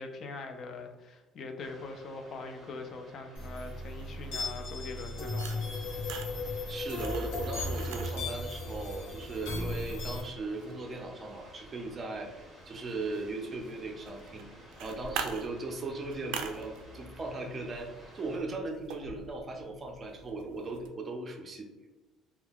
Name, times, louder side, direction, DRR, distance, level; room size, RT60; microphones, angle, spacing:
voice 1, 0.0-5.7, left 3 dB, 40° left, 5 dB, 0.4 m, -42 dB
sound 1, 1.6-18.4, equal, 5° left, 0.7 m, -54 dB
sound 2, 3.3-10.2, left 2 dB, 85° left, 0.9 m, -36 dB
sound 3, 4.3-20.9, right 6 dB, 85° right, 0.3 m, -46 dB
voice 2, 6.7-14.5 14.8-21.7, right 2 dB, 25° right, 2 dB, 0.4 m, -38 dB
2.2 x 2.2 x 3.4 m, 1.2 s
cardioid pair, 145°, 0 cm